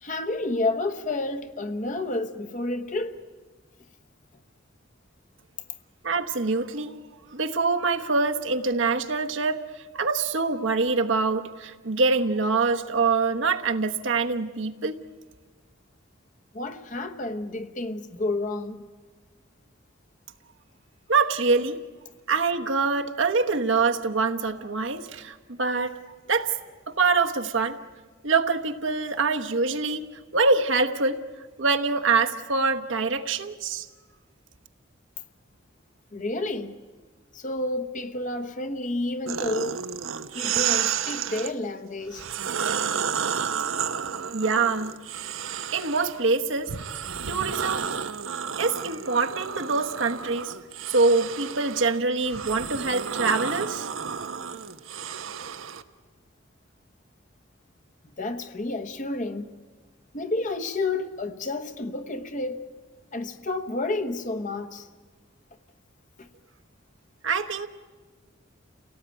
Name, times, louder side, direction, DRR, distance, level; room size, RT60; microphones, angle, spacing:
voice 1, 0.0-3.2 16.5-18.8 36.1-36.8 37.3-39.8 40.3-42.3 58.2-59.6 60.1-62.6 63.1-64.9 66.2-66.3, left 2 dB, 40° left, 1.1 m, -30 dB
voice 2, 6.0-7.0 7.3-9.7 9.9-15.0 21.1-21.8 22.3-26.0 26.3-26.5 26.9-27.8 28.2-30.1 30.3-31.2 31.6-33.9 44.3-44.9 45.7-46.7 47.3-47.9 48.6-50.5 50.9-53.9 67.2-67.7, right 4 dB, 65° right, 1.1 m, -24 dB
sound 1, 39.3-41.5 42.1-46.2 46.7-55.8, right 7 dB, 85° right, 0.9 m, -31 dB
29.0 x 18.0 x 9.0 m
head